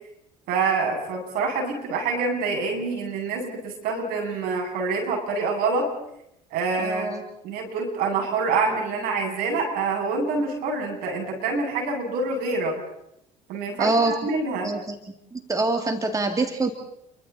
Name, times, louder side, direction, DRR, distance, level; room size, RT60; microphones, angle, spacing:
voice 1, 0.5-5.9 6.5-7.1 7.4-12.8 13.5-14.7, right 4 dB, 65° right, 1 dB, 7.8 m, -26 dB
voice 2, 6.8-7.2 13.8-14.2 14.6-15.0 15.3-16.7, right 2 dB, 20° right, 5 dB, 2.4 m, -24 dB
29.5 x 24.0 x 4.2 m, 0.79 s
hypercardioid pair, 75°, 17 cm